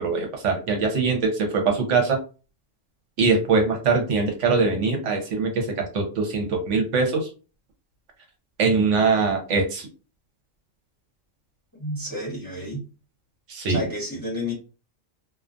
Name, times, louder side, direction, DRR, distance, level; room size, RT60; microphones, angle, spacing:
voice 1, 0.0-2.2 3.2-7.3 8.6-9.9 13.5-13.8, right 4 dB, 75° right, 3 dB, 1.0 m, -22 dB
voice 2, 11.8-12.8 13.6-14.5, left 1 dB, 20° left, -6 dB, 0.9 m, -30 dB
2.4 x 2.3 x 2.5 m, 0.34 s
omnidirectional pair, 1.3 m